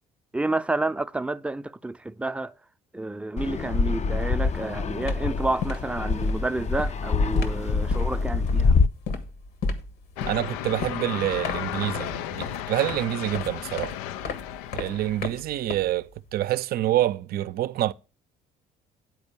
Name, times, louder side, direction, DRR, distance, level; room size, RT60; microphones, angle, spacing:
voice 1, 0.3-2.5 2.9-8.8, right 2 dB, 5° right, 0.6 m, -30 dB
Fixed-wing aircraft airplane, 3.4-8.9, left 4 dB, 40° left, 0.6 m, -25 dB
sound 1, 4.4-4.6 4.9-16.3, left 4 dB, 65° left, 1.4 m, -34 dB
sound 2, 10.2-15.3, left 12 dB, 85° left, 0.4 m, -34 dB
voice 2, 10.3-14.0 14.7-17.9, right 13 dB, 60° right, 0.5 m, -27 dB
9.6 x 4.4 x 6.8 m
hypercardioid pair, 60°, 18 cm